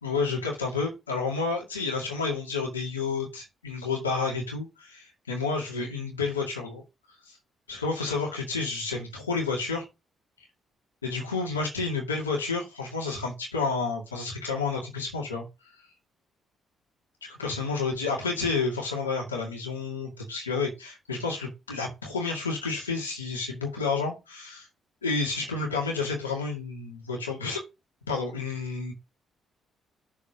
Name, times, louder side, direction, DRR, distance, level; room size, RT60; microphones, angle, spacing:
voice 1, 0.0-6.8 7.3-7.4 7.7-9.9 11.0-15.4 17.2-24.7 25.0-27.6 28.1-28.9, left 4 dB, 85° left, 0 dB, 2.3 m, -30 dB
6.7 x 4.8 x 6.4 m, 0.24 s
figure-of-eight pair, 45°, 0 cm